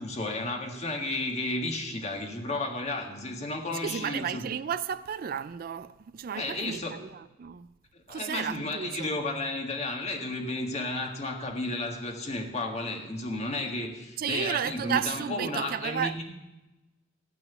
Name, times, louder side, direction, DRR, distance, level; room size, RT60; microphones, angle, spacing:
voice 1, 0.0-4.4 6.3-7.0 7.9-16.2, left 2 dB, 35° left, 1.8 m, -33 dB
voice 2, 3.7-7.7 8.1-9.2 14.2-16.2, right 8 dB, 50° right, 0.3 m, -33 dB
14.5 x 6.1 x 9.4 m
head